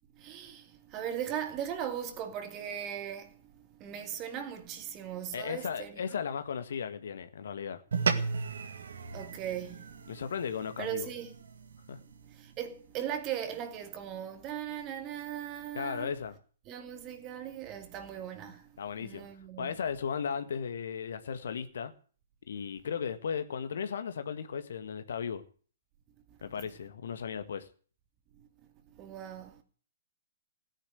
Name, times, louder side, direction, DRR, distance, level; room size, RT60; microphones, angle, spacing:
voice 1, 0.2-3.3 3.8-6.2 9.1-9.9 10.8-11.3 12.3-16.1 16.7-18.6 19.0-19.7 26.6-26.7 29.0-29.6, right 9 dB, 25° right, 2.5 m, -38 dB
voice 2, 5.3-7.8 10.1-11.1 11.9-12.0 15.7-16.4 18.8-19.3 19.6-21.9 22.5-25.4 26.4-27.7, left 7 dB, 60° left, 1.7 m, -36 dB
sound 1, 7.9-12.5, right 5 dB, 65° right, 2.0 m, -35 dB
17.0 x 10.0 x 8.1 m
figure-of-eight pair, 120°, 0 cm